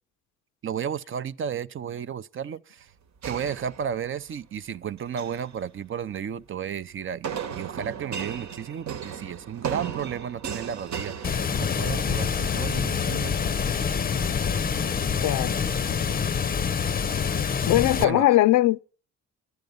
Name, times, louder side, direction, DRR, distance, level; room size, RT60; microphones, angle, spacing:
voice 1, 0.6-2.9 3.3-13.5 18.0-18.3, right 8 dB, 45° right, 0.6 m, -33 dB
sound 1, 3.2-4.3 5.0-5.5 7.2-12.1, right 7 dB, 65° right, 1.2 m, -35 dB
Water, 11.2-18.0, left 6 dB, 30° left, 0.6 m, -26 dB
voice 2, 15.2-15.6 17.6-18.8, left 15 dB, 75° left, 0.5 m, -20 dB
11.0 x 10.5 x 5.3 m
cardioid pair, 90°, 30 cm